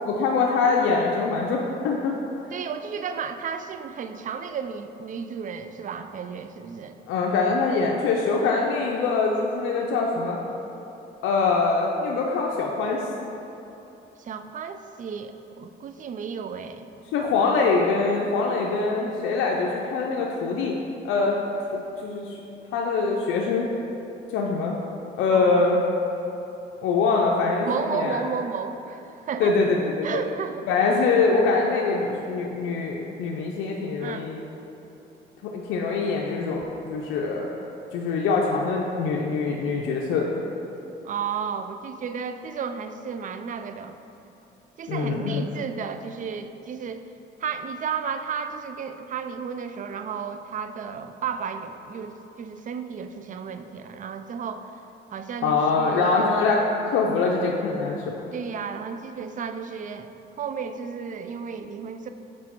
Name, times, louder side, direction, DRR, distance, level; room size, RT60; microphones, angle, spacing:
voice 1, 0.0-2.2 7.1-10.4 11.2-13.0 17.1-20.8 21.0-21.4 22.0-22.3 22.7-23.7 24.3-24.8 25.2-25.8 26.8-28.2 29.4-30.2 30.7-34.4 35.4-37.5 37.9-40.4 44.9-45.4 55.4-58.2, left 4 dB, 90° left, -1 dB, 0.5 m, -23 dB
voice 2, 2.5-7.0 14.2-16.9 25.3-25.8 27.6-29.6 30.0-30.7 34.0-34.3 41.0-44.0 44.8-47.0 47.4-54.7 55.1-56.0 58.3-60.1 60.4-62.1, right 6 dB, 40° right, 9 dB, 0.4 m, -33 dB
6.1 x 4.3 x 4.5 m, 3.0 s
cardioid pair, 90°, 20 cm